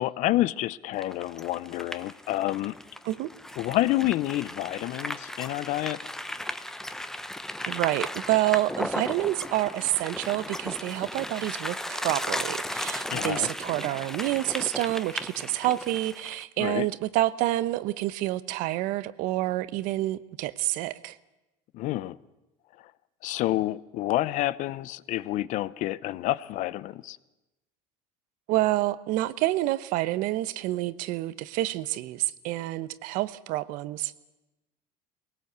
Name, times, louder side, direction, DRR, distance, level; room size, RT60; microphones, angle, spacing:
voice 1, 0.0-2.8 3.6-6.0 13.1-13.5 16.6-16.9 21.7-22.2 23.2-27.2, left 15 dB, 60° left, 0.7 m, -28 dB
sound 1, 1.0-16.4, left 1 dB, 5° left, 0.8 m, -35 dB
voice 2, 7.7-21.2 28.5-34.1, right 16 dB, 70° right, 0.9 m, -28 dB
20.5 x 18.0 x 8.0 m
cardioid pair, 125°, 15 cm